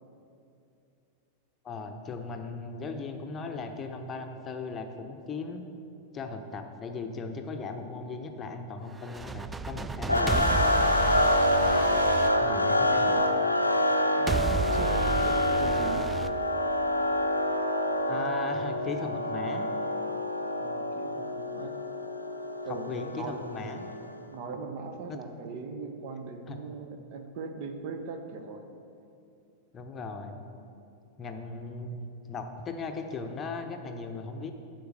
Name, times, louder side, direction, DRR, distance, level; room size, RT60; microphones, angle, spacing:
voice 1, 1.6-5.6 6.1-10.5 12.4-13.2 18.1-19.7 22.7-23.9 25.1-25.2 26.5-26.6 29.7-30.4 31.2-34.5, left 4 dB, 25° left, 5 dB, 0.8 m, -37 dB
sound 1, 9.0-13.1 14.3-17.1, right 4 dB, 10° right, 0.3 m, -33 dB
sound 2, 10.1-24.2, left 1 dB, 85° left, 0.5 m, -27 dB
voice 2, 14.7-16.1 20.6-21.8 22.6-23.4 24.3-28.7, right 4 dB, 45° right, 6 dB, 0.8 m, -40 dB
11.5 x 4.6 x 6.4 m, 2.7 s
figure-of-eight pair, 90°, 0 cm